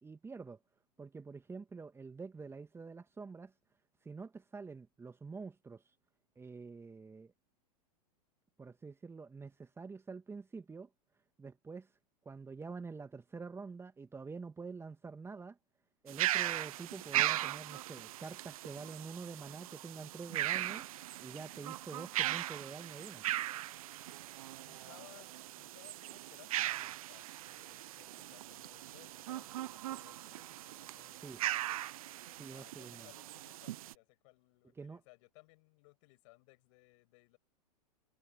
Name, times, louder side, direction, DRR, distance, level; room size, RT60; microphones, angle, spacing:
voice 1, 0.0-0.6 1.0-3.5 4.0-5.9 6.4-7.3 8.6-10.9 11.4-11.9 12.3-15.6 16.0-20.9 21.2-23.2 31.2-31.4 32.4-33.1 34.8-35.0, right 4 dB, 10° right, 1.9 m, -47 dB
sound 1, 16.1-33.9, right 14 dB, 60° right, 0.8 m, -39 dB
voice 2, 24.7-31.9 32.5-37.4, left 27 dB, 50° left, 7.1 m, -62 dB
figure-of-eight pair, 100°, 21 cm